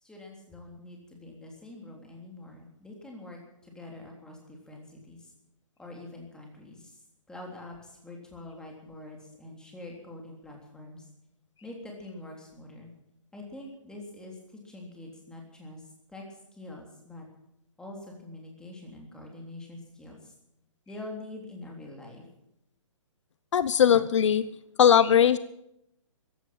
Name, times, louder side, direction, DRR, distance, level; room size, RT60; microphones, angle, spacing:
voice 1, 0.0-5.3 5.8-7.0 7.3-11.1 11.6-12.9 13.3-14.4 14.6-17.2 17.8-20.3 20.9-22.2, left 2 dB, 5° left, 0 dB, 3.4 m, -45 dB
voice 2, 23.5-24.4 24.8-25.4, left 8 dB, 65° left, 16 dB, 0.7 m, -19 dB
15.0 x 10.5 x 8.9 m, 0.81 s
hypercardioid pair, 150°, 17 cm